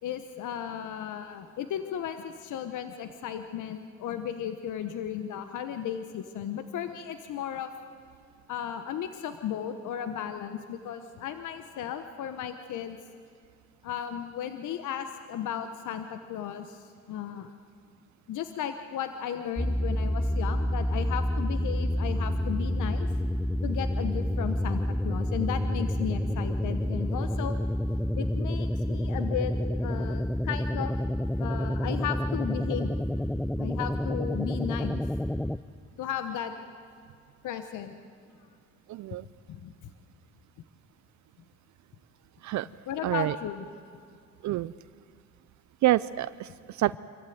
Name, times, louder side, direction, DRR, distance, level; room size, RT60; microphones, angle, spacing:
voice 1, 0.0-7.7 8.5-13.0 13.8-17.5 18.3-23.1 23.6-27.6 28.2-29.5 29.8-30.9 31.4-32.9 33.6-35.0 36.0-36.5 37.4-37.9 39.5-39.9 42.9-43.7, left 9 dB, 80° left, 8 dB, 1.2 m, -35 dB
sound 1, 19.6-35.6, equal, 5° left, 0.5 m, -29 dB
voice 2, 38.9-39.3 42.4-42.7 43.0-43.4 44.4-44.7 45.8-47.0, right 15 dB, 70° right, 17 dB, 0.5 m, -27 dB
25.5 x 15.0 x 9.3 m, 2.3 s
cardioid pair, 90°, 30 cm